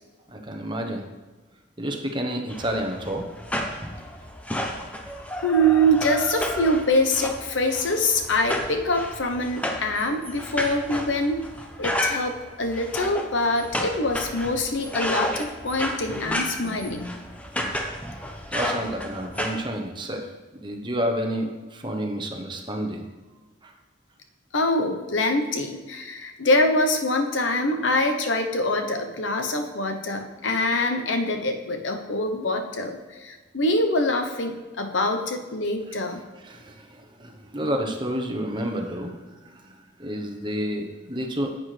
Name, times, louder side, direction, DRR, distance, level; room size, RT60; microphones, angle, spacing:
voice 1, 0.3-1.0 1.8-3.3 18.5-20.3 20.5-23.1 23.6-23.7 36.4-39.2 39.5-39.7 40.0-41.5, equal, 25° right, 3 dB, 1.0 m, -30 dB
sound 1, 2.5-19.6, equal, 5° left, 0.7 m, -32 dB
voice 2, 5.4-11.4 11.8-17.0 24.5-36.2, left 1 dB, 90° left, 5 dB, 1.0 m, -24 dB
10.0 x 8.0 x 3.4 m, 1.3 s
head